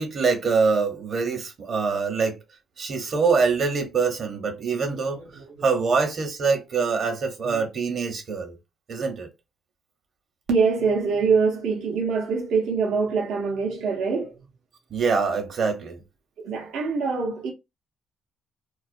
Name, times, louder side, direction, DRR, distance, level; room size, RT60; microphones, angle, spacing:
voice 1, 0.0-2.4 2.8-5.2 5.6-8.6 8.9-9.3 14.9-16.0, right 5 dB, 55° right, 0.8 m, -24 dB
voice 2, 4.9-5.6 7.4-7.7 10.5-14.4 16.4-17.5, right 5 dB, 85° right, 0.6 m, -24 dB
2.3 x 2.1 x 2.5 m
cardioid pair, 90°, 0 cm